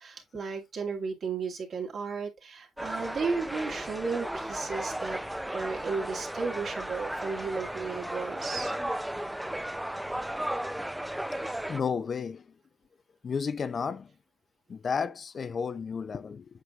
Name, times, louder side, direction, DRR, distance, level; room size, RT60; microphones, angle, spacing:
voice 1, 0.0-5.2 5.5-8.7, right 4 dB, 55° right, 2.2 m, -34 dB
sound 1, 2.8-11.8, right 1 dB, 5° right, 0.5 m, -35 dB
voice 2, 11.7-12.4 13.2-14.1 14.7-16.5, left 6 dB, 45° left, 0.5 m, -32 dB
8.0 x 6.2 x 2.4 m
cardioid pair, 90°, 0 cm